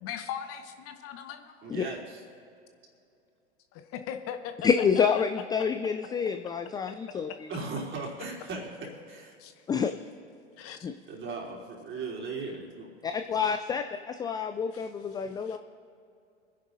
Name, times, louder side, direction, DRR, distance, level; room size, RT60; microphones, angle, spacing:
voice 1, 0.0-1.7 3.7-4.5 7.3-7.4 9.4-9.5 10.6-10.8 14.7-15.6, left 9 dB, 40° left, 8 dB, 0.9 m, -40 dB
voice 2, 1.6-2.2 7.1-7.2 7.5-9.3 11.1-12.9 13.3-13.4, right 3 dB, 35° right, -2 dB, 3.6 m, -38 dB
voice 3, 4.6-7.5 9.7-9.9 10.8-10.9 13.0-13.8 14.2-15.6, left 6 dB, 10° left, 8 dB, 0.3 m, -28 dB
26.0 x 10.5 x 2.7 m, 2.5 s
hypercardioid pair, 90°, 35 cm